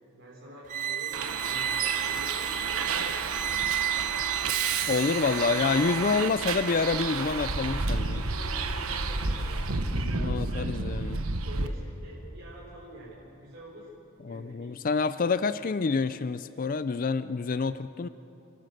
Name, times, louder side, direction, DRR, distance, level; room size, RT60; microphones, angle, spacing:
voice 1, 0.1-3.3 4.4-6.0 8.1-10.9 11.4-13.9 14.2-15.3, equal, 55° right, -5 dB, 3.7 m, -47 dB
sound 1, 0.7-7.0, right 10 dB, 35° right, 0.4 m, -33 dB
Bus, 1.1-11.7, right 4 dB, 75° right, 1.1 m, -31 dB
voice 2, 4.9-8.2 10.0-11.2 14.3-18.1, left 4 dB, 40° left, 13 dB, 0.4 m, -28 dB
29.5 x 14.0 x 6.7 m, 2.9 s
head